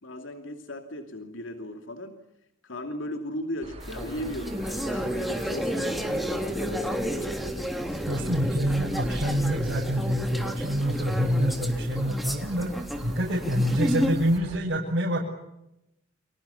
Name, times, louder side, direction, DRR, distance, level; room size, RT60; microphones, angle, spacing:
voice 1, 0.0-2.3 2.6-7.3, left 1 dB, 85° left, 5 dB, 2.8 m, -37 dB
sound 1, 3.6-14.6, equal, 35° right, 4.6 m, -42 dB
sound 2, 3.8-14.3, equal, ahead, 3.2 m, -31 dB
voice 2, 8.1-12.7 13.0-15.2, equal, 60° right, -4 dB, 7.2 m, -26 dB
30.0 x 26.0 x 7.1 m, 0.86 s
head